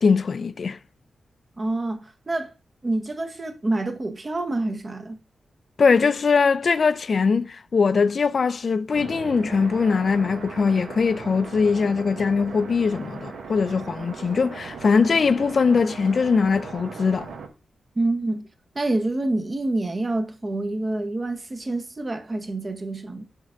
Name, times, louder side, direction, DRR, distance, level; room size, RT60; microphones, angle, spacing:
voice 1, 0.0-0.8 5.8-17.3, left 5 dB, 45° left, 0.3 m, -21 dB
voice 2, 1.6-2.5 2.8-5.2 18.0-18.5 18.7-23.2, right 2 dB, 25° right, 0.8 m, -27 dB
sound 1, 8.9-17.5, right 4 dB, 80° right, 1.2 m, -38 dB
6.4 x 3.5 x 4.9 m
wide cardioid pair, 175°, 0 cm